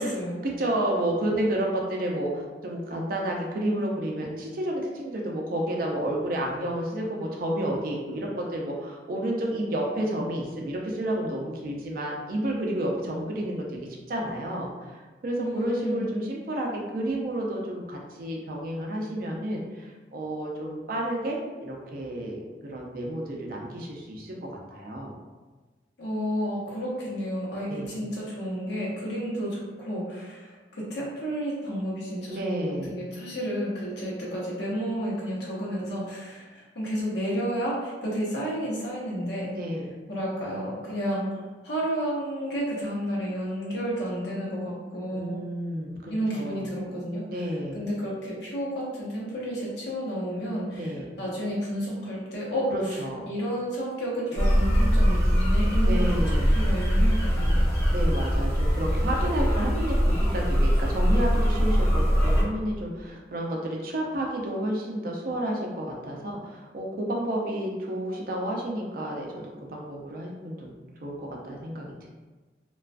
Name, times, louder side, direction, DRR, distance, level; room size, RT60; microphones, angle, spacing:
voice 1, 0.0-0.4 15.4-16.1 26.0-39.5 40.1-45.3 46.1-47.3 47.7-53.0 53.3-57.7, equal, 70° left, -6 dB, 0.8 m, -31 dB
voice 2, 0.6-13.7 14.1-25.2 27.7-27.9 32.3-33.0 39.6-39.9 45.1-46.7 47.3-47.8 50.7-51.1 52.7-53.2 55.8-56.5 57.9-70.7 71.0-72.1, right 1 dB, 50° right, -1 dB, 0.4 m, -31 dB
sound 1, 54.4-62.4, equal, 15° left, 0.8 m, -22 dB
2.3 x 2.2 x 2.4 m, 1.3 s
head